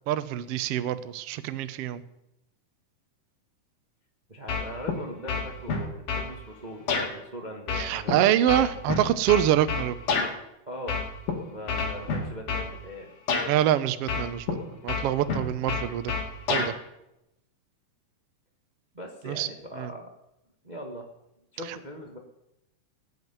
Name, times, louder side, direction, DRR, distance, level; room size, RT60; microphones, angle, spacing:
voice 1, 0.1-2.0 7.8-9.9 13.4-14.6 14.8-16.1 16.5-16.7 19.3-19.5 19.8-19.9, right 11 dB, 90° right, 12 dB, 1.3 m, -25 dB
voice 2, 4.3-8.5 10.7-11.0 11.5-13.1 18.9-20.1 20.6-21.1 21.5-22.2, equal, 45° right, 2 dB, 0.5 m, -40 dB
sound 1, 4.5-5.0 5.3-6.3 6.9-7.1 7.7-10.3 10.9-11.3 11.7-12.7 13.3-13.5 14.1-14.6 14.9-16.7, left 4 dB, 70° left, 3.9 m, -28 dB
18.0 x 7.9 x 9.3 m, 0.86 s
omnidirectional pair, 3.9 m